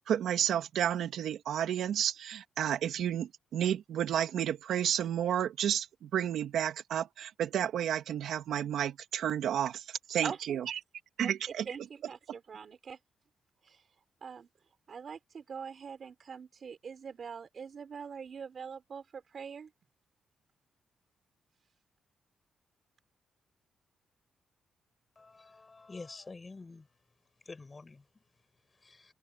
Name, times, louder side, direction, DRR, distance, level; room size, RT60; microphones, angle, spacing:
voice 1, 0.0-10.8 11.2-11.7, right 10 dB, 75° right, 2.3 m, -31 dB
voice 2, 10.2-10.6 11.2-11.3 11.7-13.0 13.6-13.8 14.2-14.5 14.9-19.7, right 6 dB, 40° right, 4.9 m, -43 dB
voice 3, 25.1-26.9 27.4-29.1, left 3 dB, 20° left, 6.3 m, -49 dB
wide cardioid pair, 170°, 0 cm